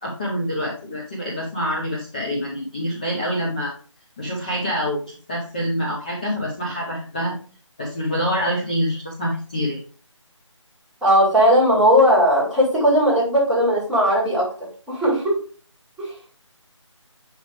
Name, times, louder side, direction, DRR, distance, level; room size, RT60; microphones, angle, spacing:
voice 1, 0.0-3.7 4.2-7.4 7.8-9.8, equal, 15° left, -4 dB, 0.7 m, -26 dB
voice 2, 11.0-14.5 14.9-15.4 16.0-16.1, equal, ahead, -9 dB, 1.6 m, -17 dB
7.8 x 4.9 x 3.3 m, 0.39 s
figure-of-eight pair, 160°, 16 cm